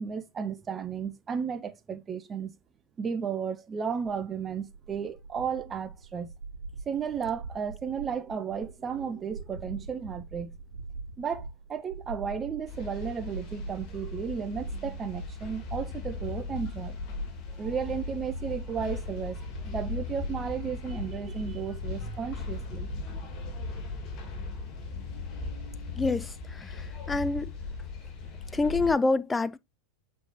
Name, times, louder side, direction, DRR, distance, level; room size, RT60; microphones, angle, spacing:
voice 1, 0.0-2.5 3.0-6.3 6.9-10.6 11.2-17.0 17.5-22.9, right 6 dB, 25° right, 0.7 m, -34 dB
sound 1, 4.0-23.9, right 3 dB, 70° right, 2.2 m, -43 dB
sound 2, 12.7-28.9, left 4 dB, 40° left, 2.6 m, -38 dB
voice 2, 26.0-27.5 28.5-29.6, left 3 dB, 15° left, 0.5 m, -27 dB
7.9 x 4.5 x 2.6 m
figure-of-eight pair, 90°, 0 cm